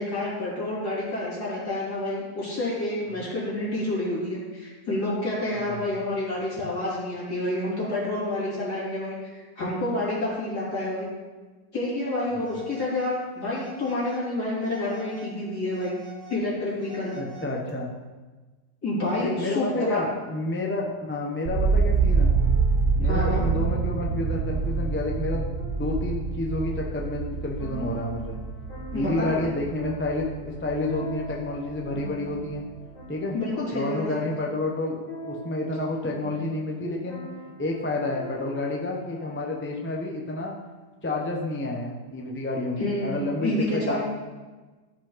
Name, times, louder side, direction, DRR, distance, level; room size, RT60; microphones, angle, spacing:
voice 1, 0.0-11.1 11.7-16.0 16.3-17.1 18.8-20.0 23.0-23.4 28.9-29.5 33.3-34.0 42.8-44.0, left 1 dB, 65° left, -8 dB, 4.0 m, -29 dB
voice 2, 5.6-6.0 12.3-12.6 17.2-17.9 19.2-22.3 22.9-28.4 28.9-32.7 33.1-33.4 33.7-37.2 37.6-40.6 41.0-44.0, left 2 dB, 10° left, -1 dB, 0.7 m, -30 dB
Telephone, 12.4-13.2 13.5-14.3 14.6-15.3 15.7-17.7, right 5 dB, 30° right, 2.4 m, -46 dB
sound 1, 21.5-31.4 31.7-32.5, right 5 dB, 65° right, 0.6 m, -26 dB
sound 2, 21.9-39.9, right 1 dB, 30° left, 1.8 m, -44 dB
14.0 x 5.3 x 3.9 m, 1.3 s
omnidirectional pair, 1.9 m